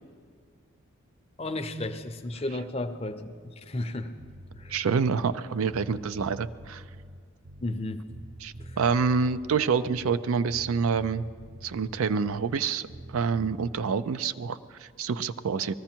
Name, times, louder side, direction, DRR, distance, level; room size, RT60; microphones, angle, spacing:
voice 1, 1.4-4.1 4.5-4.9 7.6-8.0, left 2 dB, 30° left, 8 dB, 0.6 m, -33 dB
Bass guitar, 4.2-5.4 5.7-10.2 10.5-12.6 12.9-13.8, right 1 dB, 60° right, 0.8 m, -45 dB
voice 2, 4.7-6.8 8.4-11.2 11.6-15.7, right 5 dB, 85° right, 14 dB, 0.4 m, -27 dB
19.5 x 14.0 x 4.5 m, 2.1 s
head